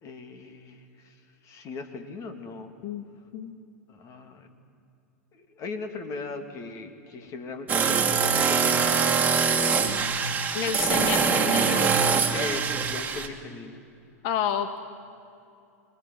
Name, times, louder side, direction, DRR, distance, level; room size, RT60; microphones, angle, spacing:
voice 1, 0.0-2.7 3.9-4.5 5.3-10.0 10.7-11.1 11.7-12.0 12.3-13.8, left 3 dB, 40° left, 6 dB, 3.1 m, -39 dB
sound 1, 7.7-13.3, right 5 dB, 20° right, 2.4 m, -23 dB
voice 2, 10.5-11.8 14.2-14.8, left 9 dB, 55° left, 8 dB, 1.9 m, -29 dB
26.0 x 22.0 x 9.7 m, 2.5 s
hypercardioid pair, 95°, 8 cm